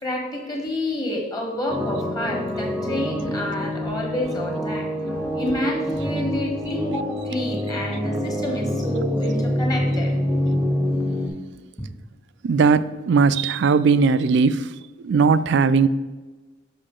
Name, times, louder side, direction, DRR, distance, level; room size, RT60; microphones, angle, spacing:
voice 1, 0.0-10.1, left 1 dB, 20° left, 0 dB, 1.4 m, -29 dB
sound 1, 1.7-11.3, left 1 dB, 10° right, 0.6 m, -26 dB
voice 2, 12.4-14.6 15.0-15.9, right 5 dB, 65° right, 14 dB, 0.3 m, -18 dB
6.7 x 5.5 x 3.7 m, 1.2 s
head